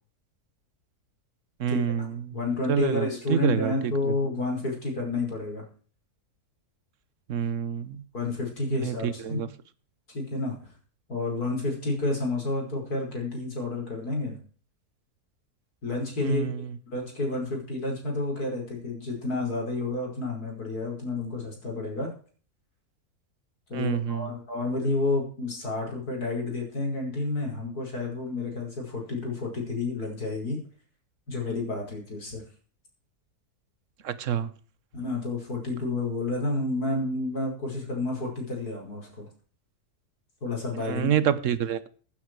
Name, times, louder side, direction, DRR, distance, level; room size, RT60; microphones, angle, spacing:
voice 1, 1.6-2.4 2.7-4.1 7.3-8.0 8.7-9.5 16.2-16.8 23.7-24.3 34.0-34.5 40.9-41.9, right 9 dB, 60° right, 15 dB, 1.3 m, -28 dB
voice 2, 2.3-5.6 8.1-9.4 10.1-10.6 11.1-14.4 15.8-16.5 16.9-22.1 23.7-30.6 31.3-32.4 34.9-39.3 40.4-41.1, left 2 dB, 85° left, 1 dB, 5.9 m, -30 dB
16.0 x 9.4 x 4.7 m, 0.41 s
omnidirectional pair, 1.6 m